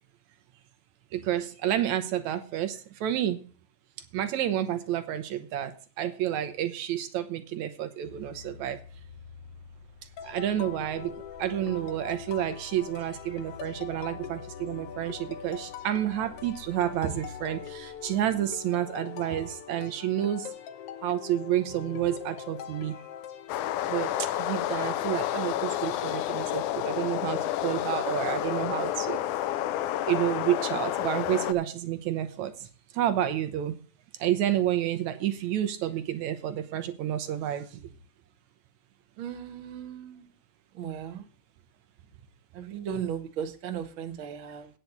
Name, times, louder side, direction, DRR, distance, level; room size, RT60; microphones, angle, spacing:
voice 1, 1.1-3.4 4.1-5.7 6.0-8.8 10.2-11.1 11.4-20.5 21.0-22.9 23.9-24.1 24.4-29.2 30.1-32.5 33.0-33.8 34.2-37.6, right 11 dB, 75° right, 10 dB, 2.1 m, -29 dB
sound 1, 8.0-18.6, left 5 dB, 15° left, 1.1 m, -50 dB
sound 2, 10.2-23.9, left 9 dB, 65° left, 1.6 m, -42 dB
sound 3, 23.5-31.5, left 13 dB, 90° left, 2.2 m, -30 dB
voice 2, 39.2-40.3 40.7-41.2 42.5-44.7, right 8 dB, 55° right, 5 dB, 1.6 m, -36 dB
9.4 x 5.7 x 7.9 m, 0.38 s
omnidirectional pair, 3.4 m